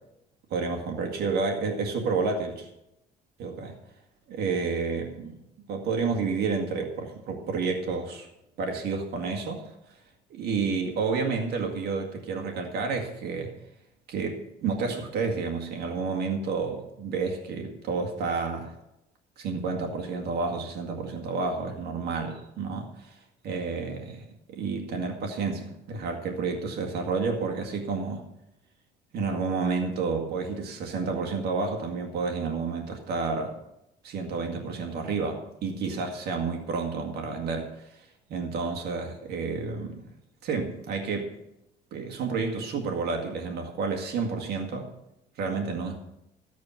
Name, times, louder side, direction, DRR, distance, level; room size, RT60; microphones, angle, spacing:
voice 1, 0.5-2.7 3.4-3.7 4.3-5.3 5.7-8.3 8.6-9.7 10.3-13.5 14.1-18.7 19.4-23.2 23.4-28.2 29.1-33.5 34.0-40.0 40.4-41.3 41.9-44.9 45.4-46.0, right 4 dB, 75° right, 2 dB, 2.0 m, -30 dB
13.5 x 8.6 x 5.8 m, 0.85 s
cardioid pair, 110°, 17 cm